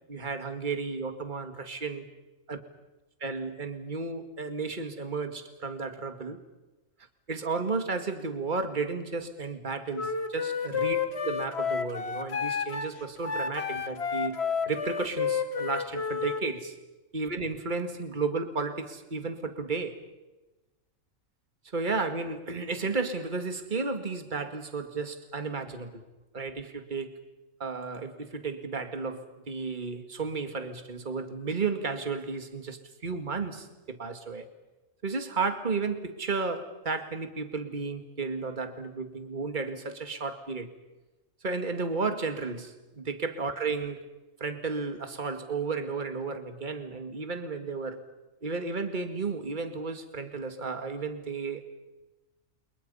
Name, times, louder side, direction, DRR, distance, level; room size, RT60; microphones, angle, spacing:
voice 1, 0.1-2.1 2.5-2.6 3.2-6.4 7.3-11.0 11.2-14.4 14.7-16.8 17.1-20.0 21.7-26.0 26.3-27.2 27.6-34.4 35.0-40.7 41.4-44.1 44.4-48.0 48.4-51.6, right 4 dB, 35° right, 7 dB, 2.2 m, -33 dB
Wind instrument woodwind instrument, 9.9-16.4, left 6 dB, 50° left, 1.8 m, -31 dB
29.5 x 29.0 x 5.6 m, 1.1 s
omnidirectional pair, 1.5 m